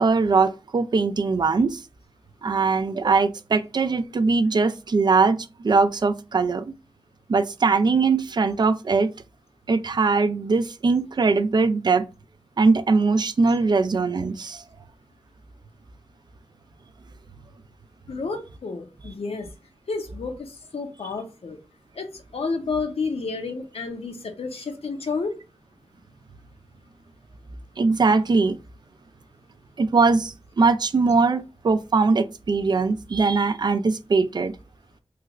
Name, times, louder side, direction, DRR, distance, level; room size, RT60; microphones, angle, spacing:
voice 1, 0.0-1.8 2.4-6.7 7.3-9.1 9.7-12.1 12.6-14.6 27.8-28.6 29.8-34.5, right 4 dB, 45° right, 0.3 m, -21 dB
voice 2, 18.1-19.5 19.9-21.6 22.0-25.3, left 4 dB, 85° left, 0.7 m, -30 dB
3.2 x 2.4 x 3.0 m
wide cardioid pair, 65°, 10 cm